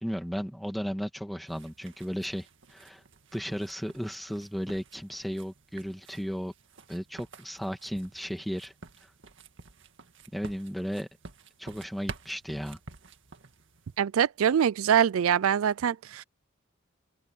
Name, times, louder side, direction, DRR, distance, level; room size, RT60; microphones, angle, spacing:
voice 1, 0.0-3.0 3.3-6.5 6.9-8.7 10.3-11.1 11.6-12.8, equal, ahead, 2.3 m, -35 dB
sound 1, 1.5-14.0, right 3 dB, 65° right, 1.9 m, -49 dB
voice 2, 14.0-16.2, right 8 dB, 80° right, 0.4 m, -24 dB
open air
head